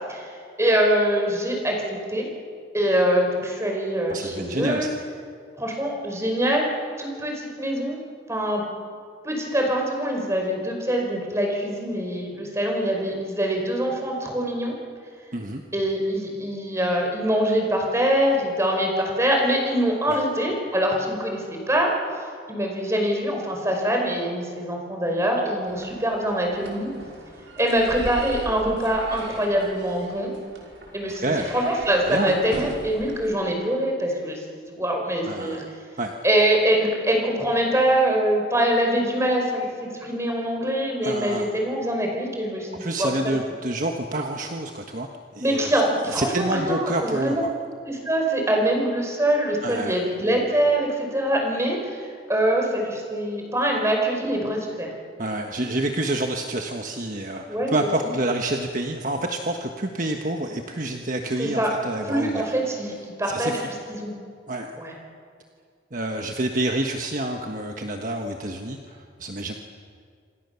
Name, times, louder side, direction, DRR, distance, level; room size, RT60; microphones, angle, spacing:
voice 1, 0.1-2.3 2.7-4.9 5.6-6.7 7.0-8.0 8.3-8.6 9.2-14.7 15.7-26.9 27.6-30.3 30.9-35.6 36.2-43.3 45.4-47.4 47.8-54.9 57.5-57.9 61.4-61.7 62.0-63.6 63.9-64.1 64.8-64.9, right 1 dB, 15° right, 1 dB, 5.0 m, -24 dB
voice 2, 4.1-4.9 15.3-15.6 20.1-20.2 31.1-31.5 32.1-32.4 35.2-35.6 36.0-36.2 41.0-41.5 42.8-45.1 45.3-45.7 46.1-47.5 49.6-49.9 55.2-62.5 63.3-63.7 64.5-64.7 65.9-69.5, right 1 dB, 45° right, 3 dB, 1.4 m, -28 dB
sound 1, 25.7-33.3, right 1 dB, 75° right, 5.4 m, -39 dB
27.5 x 26.5 x 7.1 m, 2.2 s
head